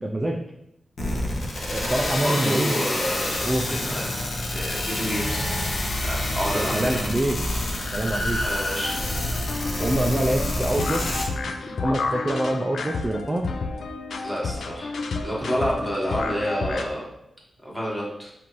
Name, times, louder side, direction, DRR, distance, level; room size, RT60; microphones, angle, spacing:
voice 1, 0.0-0.4 1.7-2.8 3.4-3.6 6.5-7.4 7.9-8.4 9.8-11.1 11.7-13.4, right 1 dB, 20° right, 2 dB, 0.3 m, -25 dB
sound 1, 1.0-11.3, left 1 dB, 60° left, 0.8 m, -27 dB
voice 2, 1.8-4.1 4.5-5.5 6.0-7.0 8.4-9.0 14.2-17.1 17.6-18.3, equal, 5° left, -5 dB, 1.1 m, -29 dB
sound 2, 8.8-16.8, left 3 dB, 75° left, 0.3 m, -31 dB
5.2 x 2.5 x 3.0 m, 0.82 s
wide cardioid pair, 125°, 0 cm